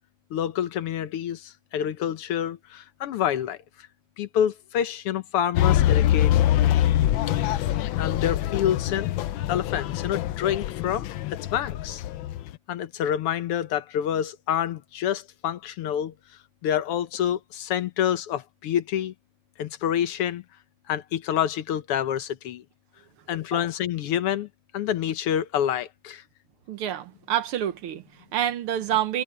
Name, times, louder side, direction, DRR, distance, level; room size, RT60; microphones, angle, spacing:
voice 1, 0.3-3.6 4.2-6.5 7.5-9.1 9.5-12.1 12.7-16.1 16.6-19.1 19.6-20.4 20.9-22.6 23.3-24.5 24.7-26.2, left 10 dB, 90° left, 2.0 m, -27 dB
sound 1, 5.5-12.5, left 12 dB, 70° left, 1.3 m, -24 dB
voice 2, 26.7-29.2, right 11 dB, 80° right, 2.0 m, -28 dB
omnidirectional pair, 2.4 m